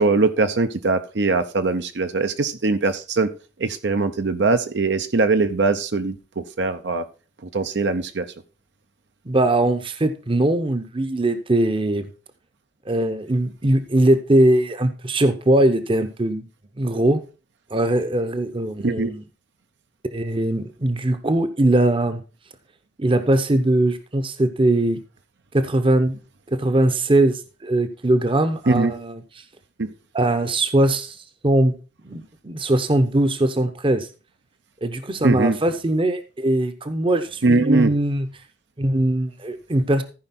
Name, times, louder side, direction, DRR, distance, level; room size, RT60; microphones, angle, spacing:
voice 1, 0.0-3.3 3.6-7.0 7.5-8.3 18.8-19.1 28.7-28.9 29.8-29.9 35.2-35.6 37.4-37.9, right 3 dB, 65° right, 9 dB, 0.7 m, -21 dB
voice 2, 9.3-12.0 12.9-16.4 16.8-17.2 17.7-19.2 20.1-22.2 23.0-25.0 25.5-26.2 26.5-29.2 30.1-31.1 31.4-31.8 32.0-34.1 34.8-38.3 38.8-40.0, right 1 dB, 30° right, 9 dB, 0.8 m, -20 dB
14.5 x 5.0 x 4.2 m, 0.33 s
head